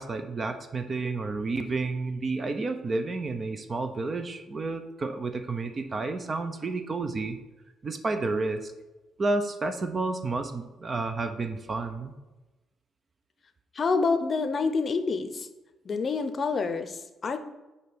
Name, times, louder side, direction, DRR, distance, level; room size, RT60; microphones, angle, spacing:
voice 1, 0.0-7.4 7.8-8.7 9.2-12.1, right 3 dB, 35° right, 7 dB, 0.6 m, -30 dB
voice 2, 13.7-15.5 15.8-17.4, left 4 dB, 45° left, 9 dB, 0.7 m, -27 dB
5.3 x 4.2 x 6.0 m, 1.1 s
cardioid pair, 90°, 0 cm